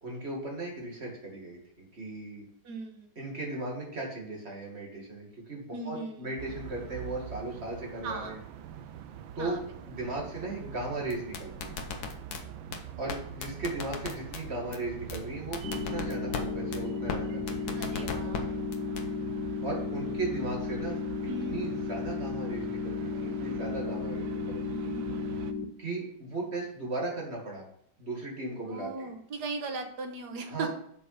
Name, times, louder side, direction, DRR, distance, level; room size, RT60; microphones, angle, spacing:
voice 1, 0.0-2.4 3.2-8.4 9.4-9.6 9.9-11.7 13.0-18.5 19.6-21.0 21.4-24.9 25.8-27.7 28.0-29.1 30.5-30.7, right 2 dB, 35° right, -2 dB, 2.5 m, -37 dB
voice 2, 2.6-3.1 5.7-6.3 8.0-8.4 9.4-9.6 13.7-14.0 17.8-18.6 21.3-21.6 24.7-25.2 28.7-30.7, right 3 dB, 60° right, 5 dB, 1.6 m, -38 dB
sound 1, 6.4-25.5, right 9 dB, 85° right, 1.4 m, -44 dB
sound 2, 11.1-12.4 12.7-12.8 13.1-13.2 13.4-14.4 14.7-14.8 15.1-15.2 15.5-16.4 16.7-16.8 17.1-17.2 17.5-18.4 18.7-19.0, left 6 dB, 60° left, 1.4 m, -35 dB
sound 3, 15.6-25.7, left 4 dB, 80° left, 1.7 m, -34 dB
7.2 x 5.5 x 5.8 m, 0.67 s
omnidirectional pair, 2.1 m